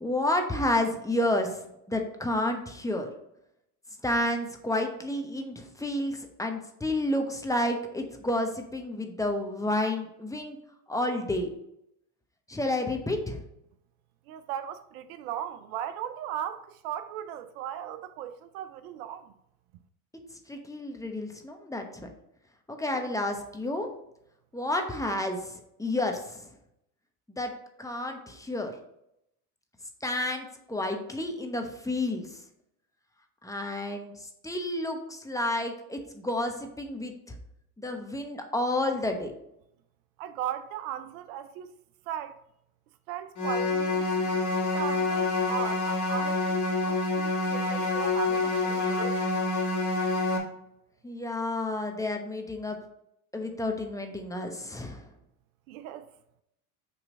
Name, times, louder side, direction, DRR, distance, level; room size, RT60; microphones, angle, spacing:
voice 1, 0.0-1.6 1.9-3.1 4.0-10.6 10.9-11.5 12.5-13.4 20.5-21.8 22.7-23.9 24.5-26.4 27.3-27.5 27.8-28.7 30.0-32.3 33.4-37.4 37.8-39.3 51.0-52.8 53.3-55.1, left 1 dB, 5° left, 0.9 m, -30 dB
voice 2, 14.3-19.3 22.9-23.0 40.2-41.7 42.1-42.4 43.1-44.4 44.7-49.2 55.7-56.1, right 10 dB, 70° right, 0.5 m, -37 dB
sound 1, 43.4-50.4, left 3 dB, 40° left, 1.7 m, -27 dB
5.8 x 3.2 x 5.2 m
hypercardioid pair, 70°, 45 cm